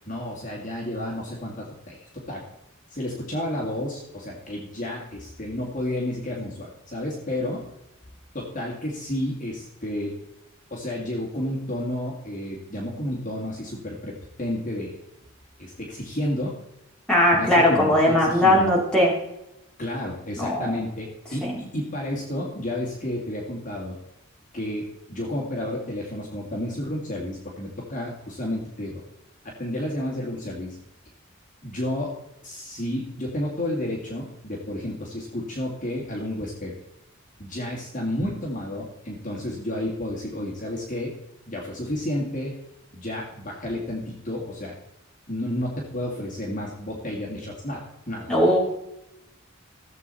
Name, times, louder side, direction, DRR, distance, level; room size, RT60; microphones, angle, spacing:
voice 1, 0.1-2.5 2.9-7.7 8.3-10.1 10.7-14.9 15.6-16.6 17.3-18.6 19.8-24.0 24.5-29.0 29.4-30.8 31.6-32.2 32.4-36.8 37.4-41.1 41.5-42.6 42.9-44.7 45.3-48.6, left 1 dB, 40° left, -2 dB, 2.2 m, -31 dB
voice 2, 17.1-19.1 20.4-20.7 21.4-21.5 48.3-48.6, left 1 dB, 5° left, -5 dB, 3.6 m, -19 dB
15.5 x 7.7 x 4.2 m, 0.89 s
head